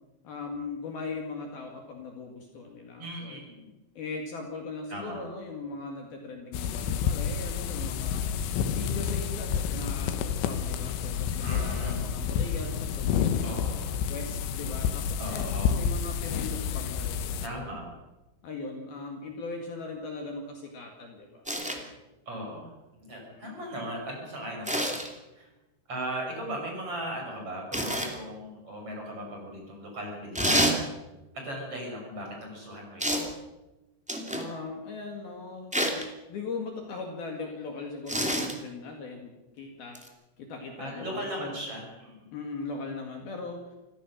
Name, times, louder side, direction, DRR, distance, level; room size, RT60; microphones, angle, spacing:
voice 1, 0.2-3.4 4.0-8.2 8.7-13.7 14.1-17.8 18.4-22.0 23.2-23.7 34.3-40.0 40.4-41.7 42.3-43.6, left 3 dB, 55° left, 2 dB, 3.5 m, -39 dB
voice 2, 3.0-3.7 4.9-5.2 11.4-12.0 13.4-14.0 15.2-15.8 17.4-17.9 22.3-25.0 25.3-25.5 25.9-30.8 31.3-33.3 40.8-42.3, right 1 dB, 30° right, 0 dB, 6.8 m, -38 dB
sound 1, 6.5-17.5, left 7 dB, 75° left, 3.5 m, -29 dB
sound 2, 21.4-21.8 24.6-25.1 27.7-28.1 30.3-30.8 33.0-33.3 34.1-34.5 35.7-36.0 38.1-38.5 39.9-40.1, equal, 10° right, 0.3 m, -27 dB
26.0 x 16.0 x 6.6 m, 1.0 s
omnidirectional pair, 5.7 m